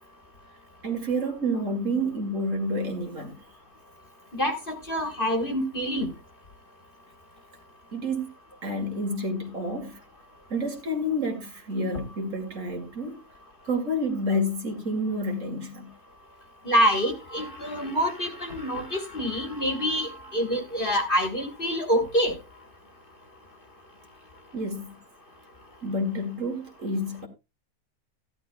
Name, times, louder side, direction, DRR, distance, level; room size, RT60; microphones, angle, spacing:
voice 1, 0.8-3.4 7.9-8.3 8.6-10.0 10.5-13.2 13.6-15.9 24.5-24.9 25.8-27.3, equal, 50° right, 2.5 m, -29 dB
voice 2, 4.3-6.1 16.6-22.3, equal, 35° left, 1.6 m, -26 dB
14.5 x 11.5 x 2.2 m
omnidirectional pair, 1.7 m